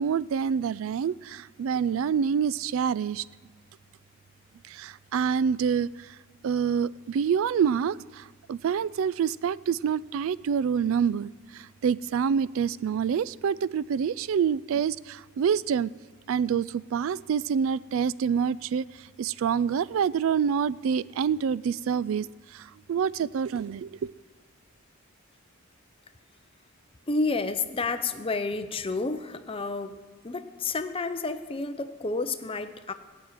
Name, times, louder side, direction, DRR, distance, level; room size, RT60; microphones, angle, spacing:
voice 1, 0.0-3.2 4.7-6.1 6.4-15.9 16.3-18.9 19.2-22.3 22.5-24.0, right 7 dB, 65° right, 20 dB, 0.3 m, -27 dB
voice 2, 27.1-30.0 30.2-32.9, left 3 dB, 25° left, 9 dB, 0.6 m, -30 dB
17.5 x 6.3 x 9.0 m, 1.4 s
head